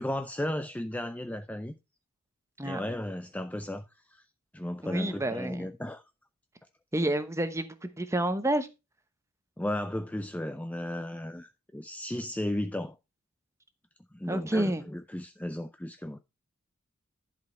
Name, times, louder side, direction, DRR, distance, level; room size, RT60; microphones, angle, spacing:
voice 1, 0.0-1.8 2.6-3.8 4.1-4.2 4.5-6.0 9.6-13.0 14.1-16.2, left 1 dB, 5° left, 0.4 m, -34 dB
voice 2, 4.8-5.7 6.9-8.7 14.3-14.8, right 1 dB, 15° right, 0.9 m, -29 dB
11.0 x 5.2 x 4.4 m
head